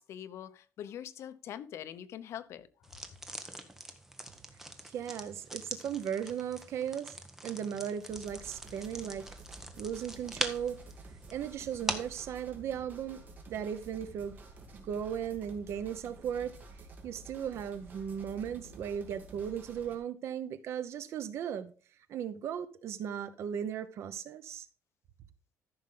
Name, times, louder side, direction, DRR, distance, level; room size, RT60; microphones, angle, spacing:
voice 1, 0.0-2.9, left 10 dB, 55° left, 0.8 m, -44 dB
sound 1, 2.8-12.2, right 1 dB, 5° right, 1.1 m, -42 dB
voice 2, 4.8-7.2 7.4-9.3 9.8-10.8 11.3-14.4 14.8-16.5 17.0-21.7 22.1-24.7, right 8 dB, 55° right, 0.8 m, -37 dB
sound 2, 8.1-20.0, right 3 dB, 30° right, 2.5 m, -51 dB
14.0 x 6.3 x 3.8 m
cardioid pair, 170°, 6 cm